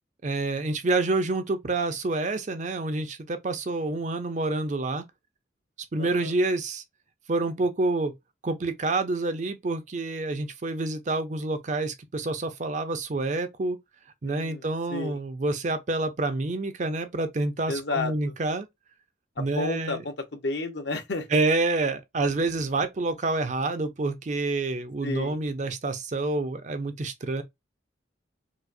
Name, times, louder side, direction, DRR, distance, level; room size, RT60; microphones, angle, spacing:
voice 1, 0.2-5.0 5.9-6.8 7.3-8.1 8.4-13.8 14.2-18.7 19.4-20.0 21.3-27.4, right 2 dB, 40° right, 0.5 m, -28 dB
voice 2, 6.0-6.3 14.2-15.2 17.7-18.3 19.4-21.4 25.0-25.4, left 3 dB, 60° left, 0.8 m, -32 dB
4.6 x 2.0 x 2.5 m
head